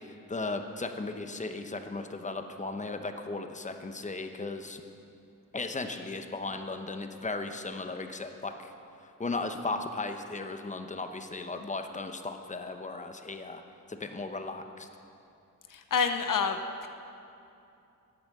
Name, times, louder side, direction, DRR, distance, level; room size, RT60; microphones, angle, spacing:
voice 1, 0.3-4.8 5.5-8.7 9.2-13.6 13.9-14.9, left 3 dB, 20° left, 7 dB, 0.9 m, -36 dB
voice 2, 15.7-16.6, left 6 dB, 70° left, 7 dB, 0.8 m, -27 dB
11.0 x 9.0 x 6.8 m, 2.7 s
cardioid pair, 65°, 34 cm